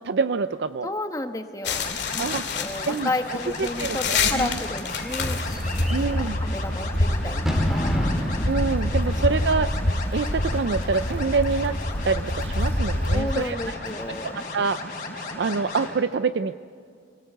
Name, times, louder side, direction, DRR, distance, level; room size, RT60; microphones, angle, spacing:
voice 1, 0.0-0.9 2.2-2.5 2.8-4.6 5.9-6.4 8.5-9.7 10.1-11.8 12.0-13.6 14.5-14.8 15.4-16.6, right 4 dB, 80° right, 12 dB, 0.5 m, -26 dB
voice 2, 0.8-7.4 7.7-8.1 13.1-14.3, left 2 dB, 20° left, 7 dB, 1.1 m, -32 dB
sound 1, 1.6-13.2, left 2 dB, 80° left, 2.2 m, -27 dB
sound 2, 1.7-15.9, left 2 dB, 45° left, 4.4 m, -35 dB
Bird / Fireworks, 3.4-12.6, equal, ahead, 2.7 m, -34 dB
25.5 x 18.0 x 8.1 m, 2.2 s
head